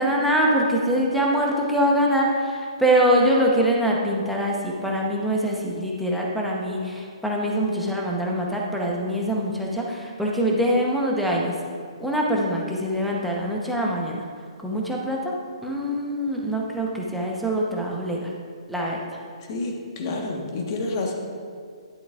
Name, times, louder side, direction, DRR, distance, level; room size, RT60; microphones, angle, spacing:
voice 1, 0.0-11.5 12.0-14.2 14.6-15.3 15.6-18.3 18.7-19.0, equal, ahead, -3 dB, 0.8 m, -23 dB
voice 2, 19.5-21.1, left 2 dB, 40° left, 0 dB, 1.3 m, -29 dB
10.5 x 8.1 x 2.5 m, 2.1 s
hypercardioid pair, 150°, 3 cm